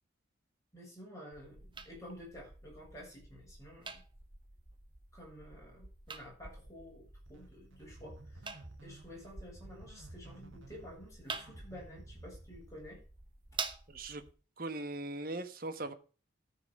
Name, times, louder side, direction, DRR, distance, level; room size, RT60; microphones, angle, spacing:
voice 1, 0.7-4.0 5.1-8.5 8.8-13.0, equal, 15° left, -3 dB, 7.5 m, -51 dB
sound 1, 1.3-14.3, right 4 dB, 25° right, 0.9 m, -48 dB
sound 2, 7.2-13.1, right 2 dB, 85° right, 1.8 m, -54 dB
voice 2, 13.9-14.2 14.6-15.9, right 2 dB, 45° right, 10 dB, 1.2 m, -39 dB
13.5 x 5.9 x 6.6 m, 0.36 s
head